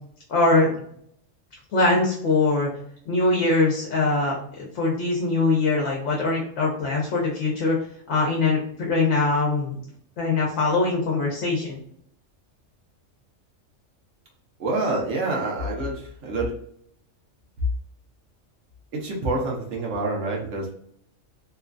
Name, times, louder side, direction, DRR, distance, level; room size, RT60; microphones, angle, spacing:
voice 1, 0.3-0.7 1.7-2.7 3.1-7.8 8.1-9.7 10.2-11.8, left 3 dB, 70° left, -3 dB, 1.0 m, -22 dB
voice 2, 14.6-16.5 18.9-20.7, right 2 dB, 70° right, -2 dB, 1.1 m, -27 dB
3.1 x 2.3 x 2.4 m, 0.66 s
omnidirectional pair, 1.3 m